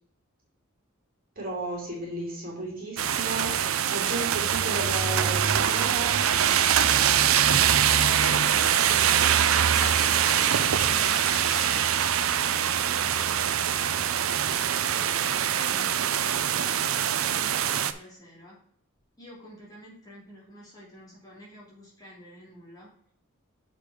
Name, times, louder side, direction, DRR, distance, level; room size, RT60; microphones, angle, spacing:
voice 1, 1.3-6.2 6.9-7.7 15.7-15.9, right 2 dB, 45° right, -3 dB, 3.2 m, -35 dB
sound 1, 3.0-17.9, right 9 dB, 80° right, 0.5 m, -23 dB
voice 2, 4.6-4.9 9.3-15.1 15.5-18.6 19.2-22.9, equal, 20° left, -5 dB, 2.7 m, -49 dB
sound 2, 6.5-11.7, equal, ahead, 1.3 m, -42 dB
6.8 x 5.2 x 4.9 m, 0.66 s
head